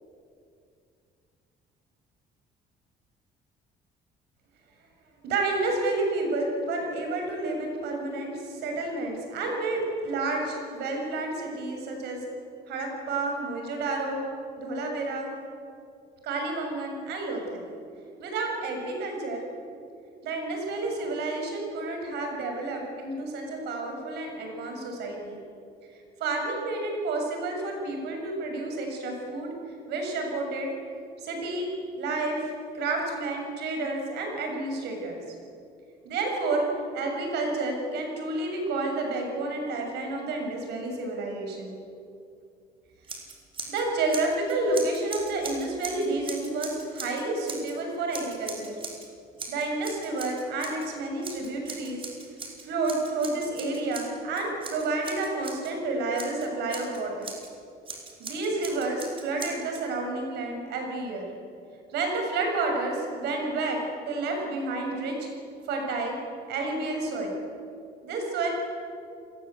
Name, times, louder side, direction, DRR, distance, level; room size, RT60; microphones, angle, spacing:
voice 1, 5.2-12.3 12.7-14.2 14.6-15.3 16.2-17.7 18.2-19.4 20.2-25.4 26.2-29.6 29.9-30.7 31.2-31.7 32.0-35.2 36.0-41.8 43.7-48.8 49.5-52.0 52.6-57.3 58.2-61.3 61.9-65.3 65.7-66.2 66.5-67.4 68.0-68.5, right 2 dB, 80° right, 2 dB, 7.1 m, -30 dB
Scissors, 43.0-43.8 44.1-47.7 48.1-49.1 49.4-50.9 51.2-55.7 56.2-57.5 57.9-59.8, right 4 dB, 30° right, 5.1 m, -40 dB
27.5 x 20.5 x 8.3 m, 2.5 s
cardioid pair, 110°, 17 cm